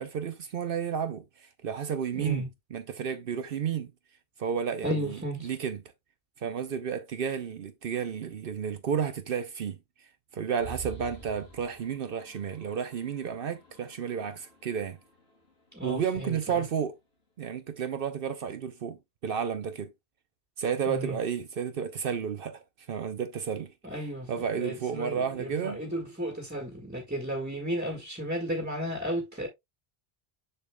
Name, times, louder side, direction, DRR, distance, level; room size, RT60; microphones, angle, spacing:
voice 1, 0.0-2.4 2.7-3.9 4.4-5.8 6.4-9.8 10.3-15.0 15.8-17.0 17.4-19.0 19.2-19.9 20.6-22.6 22.9-23.7 24.3-25.8, right 7 dB, 65° right, 0.9 m, -32 dB
voice 2, 2.1-2.5 4.8-5.5 15.7-16.4 20.9-21.2 23.8-29.5, equal, 10° right, 1.6 m, -34 dB
sound 1, 10.6-16.1, right 6 dB, 75° left, 3.0 m, -48 dB
6.7 x 6.7 x 2.2 m
omnidirectional pair, 1.1 m